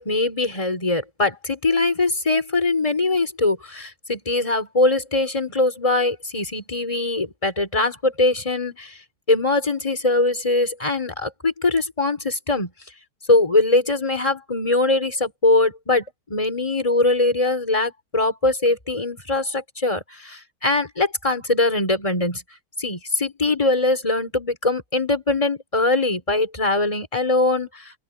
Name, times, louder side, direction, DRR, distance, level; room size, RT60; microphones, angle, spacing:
voice 1, 0.0-8.9 9.3-12.7 13.3-22.4 22.8-27.8, left 2 dB, 10° left, 4.4 m, -22 dB
open air
omnidirectional pair, 3.4 m